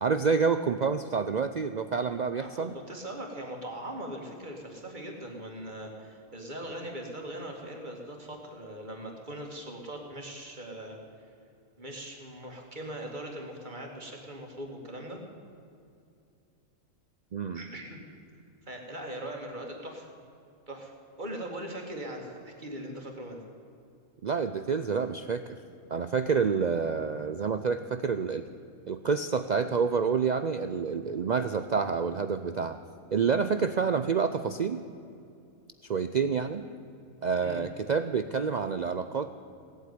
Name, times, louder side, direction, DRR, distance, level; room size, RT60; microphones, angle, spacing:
voice 1, 0.0-2.7 17.3-17.6 24.2-25.6 25.9-28.4 28.9-32.8 33.1-34.8 35.8-36.6 37.2-39.3, right 5 dB, 65° right, 9 dB, 0.4 m, -28 dB
voice 2, 2.4-11.3 11.8-15.2 17.5-18.0 18.6-20.1 20.7-20.9 21.2-23.4 37.4-37.6, right 1 dB, 35° right, 1 dB, 2.3 m, -40 dB
17.5 x 8.4 x 9.5 m, 2.5 s
omnidirectional pair, 1.4 m